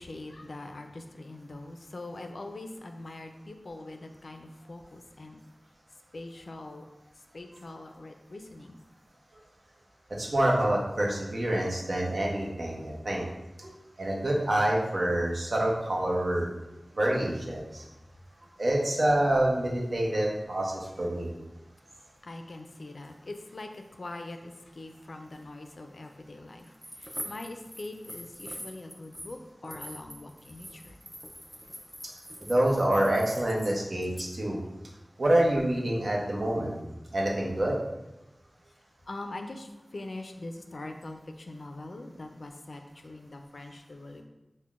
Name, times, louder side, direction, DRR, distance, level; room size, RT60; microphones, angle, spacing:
voice 1, 0.0-5.4 6.1-6.8 7.3-8.8 17.8-17.9 22.2-31.0 39.1-44.2, left 2 dB, 65° left, 5 dB, 0.3 m, -43 dB
voice 2, 10.1-13.3 13.6-13.7 14.0-16.5 16.9-17.8 18.6-21.3 32.5-34.6 35.2-36.8 37.1-37.8, right 1 dB, 60° right, -2 dB, 0.7 m, -27 dB
sound 1, 26.6-29.4 29.6-33.7 34.0-34.2, equal, 5° right, 0.4 m, -44 dB
5.5 x 2.1 x 2.4 m, 0.97 s
wide cardioid pair, 75°, 0 cm